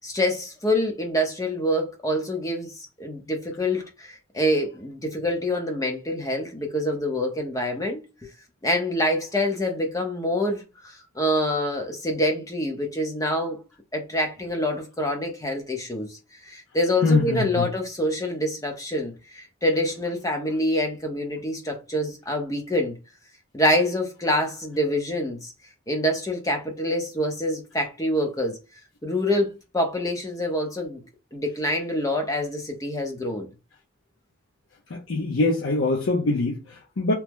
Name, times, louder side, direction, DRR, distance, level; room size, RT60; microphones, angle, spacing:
voice 1, 0.0-2.7 3.0-8.3 8.6-13.6 13.9-16.2 16.5-23.0 23.5-25.5 25.9-28.6 29.0-31.0 31.3-33.5, left 1 dB, 15° left, 0.6 m, -26 dB
voice 2, 17.0-17.7 34.9-37.1, left 3 dB, 65° left, 0.6 m, -23 dB
2.9 x 2.0 x 3.5 m
head